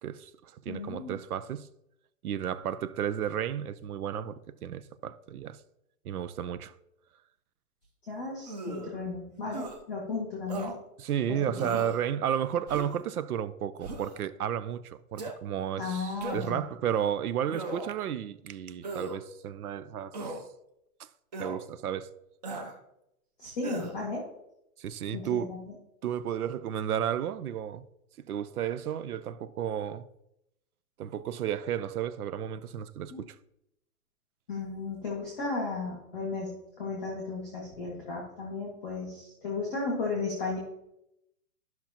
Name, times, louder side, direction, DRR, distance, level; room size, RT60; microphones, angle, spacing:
voice 1, 0.0-1.7 2.2-5.6 6.0-6.7 11.0-20.3 21.0-21.1 21.4-22.1 24.8-25.5 26.0-27.8 28.3-30.1 31.0-33.4, right 9 dB, 80° right, 0.7 m, -33 dB
voice 2, 0.7-1.2 8.1-10.7 11.3-11.8 15.8-16.6 23.4-24.3 25.1-25.7 33.1-33.2 34.5-40.6, left 3 dB, ahead, 0.5 m, -35 dB
sound 1, 8.5-8.9 9.5-9.8 10.5-10.7 11.5-12.0 12.7-13.0 13.8-14.2 15.2-15.3 16.2-16.6 17.5-18.0 18.8-19.2 20.1-20.4 21.3-21.6 22.4-22.7 23.6-24.0, right 3 dB, 30° right, 0.8 m, -38 dB
13.0 x 5.9 x 2.9 m
hypercardioid pair, 180°, 44 cm